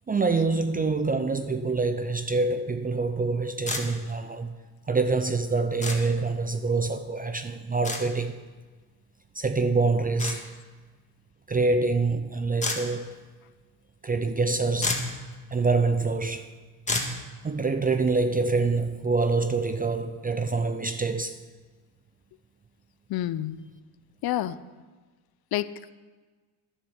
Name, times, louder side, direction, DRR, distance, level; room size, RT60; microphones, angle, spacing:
voice 1, 0.1-4.5 4.9-8.4 9.4-10.5 11.5-13.1 14.0-15.0 15.5-16.5 17.4-21.4, right 3 dB, 20° right, 0.5 m, -26 dB
sound 1, 3.7-3.8 5.8-6.0 7.8-8.0 10.2-10.4 12.6-12.8 14.4-14.5 14.8-15.1 16.9-17.1, left 2 dB, 15° left, 1.7 m, -28 dB
voice 2, 23.1-23.7 24.2-24.6 25.5-25.9, left 13 dB, 55° left, 0.6 m, -29 dB
11.5 x 7.5 x 6.4 m
cardioid pair, 95°, 46 cm